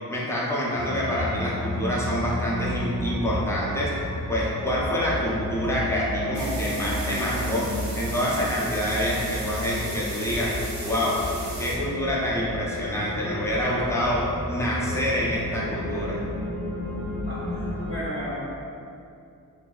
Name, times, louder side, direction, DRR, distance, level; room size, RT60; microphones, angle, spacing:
voice 1, 0.1-4.0 4.3-7.7 7.9-10.5 10.8-11.2 11.6-16.2, equal, 10° left, -6 dB, 0.5 m, -26 dB
sound 1, 0.8-17.9, left 1 dB, 85° left, 0.5 m, -32 dB
sound 2, 6.3-11.8, right 2 dB, 50° right, 0.5 m, -37 dB
voice 2, 17.3-18.5, equal, 40° left, -11 dB, 0.8 m, -34 dB
2.6 x 2.3 x 2.3 m, 2.6 s
wide cardioid pair, 80°, 36 cm